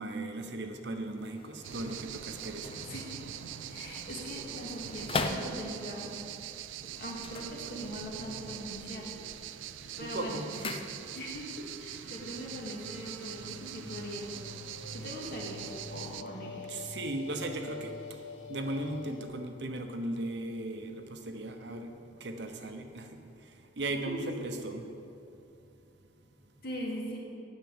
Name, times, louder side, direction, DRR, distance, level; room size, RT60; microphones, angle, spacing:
voice 1, 0.0-2.8 10.0-10.8 16.7-17.9 18.5-21.9 22.2-23.1 23.8-24.8, right 2 dB, 55° right, 5 dB, 0.9 m, -37 dB
sound 1, 1.0-6.1 7.1-8.2 8.5-9.0 9.4-11.5 11.7-11.8, left 3 dB, 30° left, 0.5 m, -40 dB
sound 2, 1.6-16.2, right 11 dB, 75° right, 0.4 m, -43 dB
voice 2, 2.8-3.2 3.7-6.1 6.8-9.1 10.0-10.4 11.1-14.3 14.9-16.7 24.1-24.3 26.6-27.2, equal, 50° left, -3 dB, 2.2 m, -41 dB
sound 3, 8.1-19.2, left 4 dB, 70° left, 1.0 m, -48 dB
9.3 x 6.8 x 8.6 m, 2.8 s
head